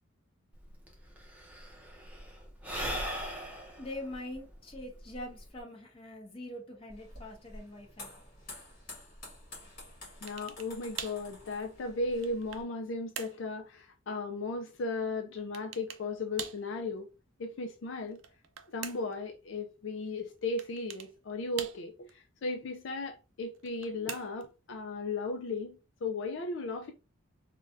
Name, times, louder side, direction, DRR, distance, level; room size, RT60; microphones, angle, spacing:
Sigh / Breathing, 0.6-0.7 0.9-5.6, equal, 10° right, 0.6 m, -39 dB
voice 1, 3.8-8.1, left 1 dB, 25° left, 0.9 m, -43 dB
sound 1, 6.9-12.6, left 2 dB, 45° left, 1.7 m, -50 dB
voice 2, 10.2-17.1 17.4-18.2 18.7-26.9, left 3 dB, 65° left, 0.4 m, -36 dB
sound 2, 10.3-10.7 11.0-11.3 11.9-12.7 13.2-13.4 15.5-16.1 16.4-16.7 18.1-19.2 20.6-21.1 21.6-22.1 23.5-24.5, right 8 dB, 70° right, 0.4 m, -43 dB
3.3 x 2.2 x 2.6 m
head